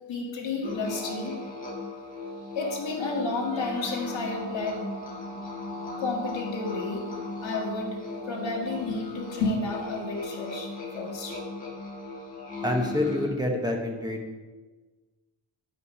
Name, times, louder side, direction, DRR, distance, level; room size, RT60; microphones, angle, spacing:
voice 1, 0.1-1.4 2.6-4.8 6.0-7.1 7.4-8.0 8.2-11.4, left 3 dB, 70° left, -1 dB, 2.0 m, -31 dB
sound 1, 0.6-13.3, left 2 dB, 15° left, 2.0 m, -37 dB
voice 2, 12.6-14.2, left 1 dB, 10° right, 1 dB, 1.0 m, -27 dB
9.7 x 5.7 x 5.4 m, 1.3 s
wide cardioid pair, 180°, 47 cm